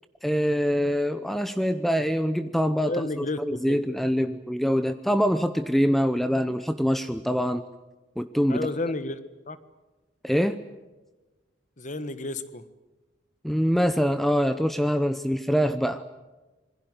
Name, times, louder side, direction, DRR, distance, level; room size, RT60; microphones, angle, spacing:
voice 1, 0.2-2.9 3.4-7.6 8.2-8.7 10.2-10.6 13.4-16.0, equal, ahead, 11 dB, 0.8 m, -24 dB
voice 2, 2.8-3.4 3.7-3.8 8.5-9.2 9.5-9.6 11.8-12.6, left 2 dB, 40° left, 13 dB, 1.4 m, -31 dB
27.0 x 22.0 x 8.0 m, 1.2 s
head